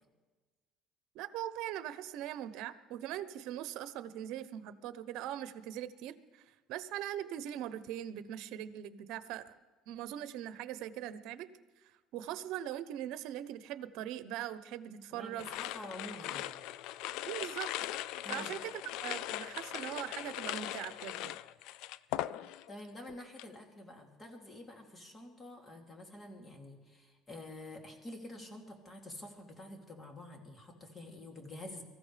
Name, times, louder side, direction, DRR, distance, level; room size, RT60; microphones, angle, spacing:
voice 1, 1.1-6.4 6.7-9.5 9.9-11.5 12.1-15.5 17.2-17.7 18.3-18.7 19.0-21.4, right 11 dB, 75° right, 13 dB, 0.8 m, -41 dB
voice 2, 15.1-16.6 18.2-18.5 22.7-31.8, left 1 dB, 25° left, 1 dB, 2.9 m, -48 dB
sound 1, 15.4-22.8 23.1-23.6, left 14 dB, 75° left, 0.3 m, -40 dB
23.5 x 14.5 x 3.4 m, 1.3 s
cardioid pair, 110°, 0 cm